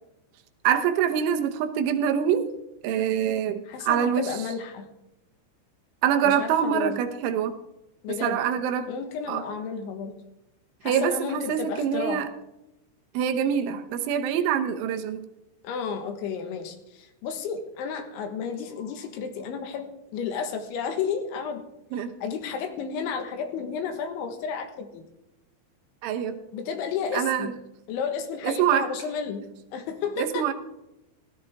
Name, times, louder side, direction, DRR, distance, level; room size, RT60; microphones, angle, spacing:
voice 1, 0.7-2.5 2.8-4.4 6.0-7.6 8.1-8.9 9.3-9.4 10.9-12.3 13.2-15.3 21.9-22.1 26.0-26.4 27.1-27.5 28.4-28.9 30.2-30.5, right 8 dB, 80° right, 6 dB, 3.4 m, -25 dB
voice 2, 3.7-4.9 6.2-7.0 8.0-8.4 8.8-10.2 10.8-12.2 15.6-21.6 22.2-25.1 26.5-27.5 27.9-30.5, left 6 dB, 75° left, 6 dB, 3.7 m, -32 dB
17.0 x 13.5 x 3.5 m, 0.90 s
omnidirectional pair, 5.5 m